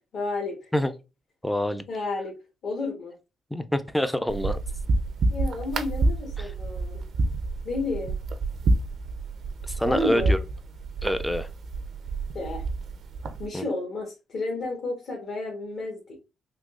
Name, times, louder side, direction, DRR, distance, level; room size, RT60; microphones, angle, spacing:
voice 1, 0.1-0.7 1.9-2.4 2.6-3.1 5.3-7.0 7.6-8.1 9.8-10.4 12.3-12.7 13.4-16.2, left 2 dB, 60° left, 1.2 m, -31 dB
voice 2, 1.4-1.8 3.5-4.6 6.4-6.5 9.7-10.4 11.0-11.5 13.5-13.6, equal, 5° left, 0.4 m, -26 dB
sound 1, 4.3-13.5, right 2 dB, 60° right, 0.5 m, -28 dB
3.7 x 2.7 x 2.4 m
cardioid pair, 90°, 0 cm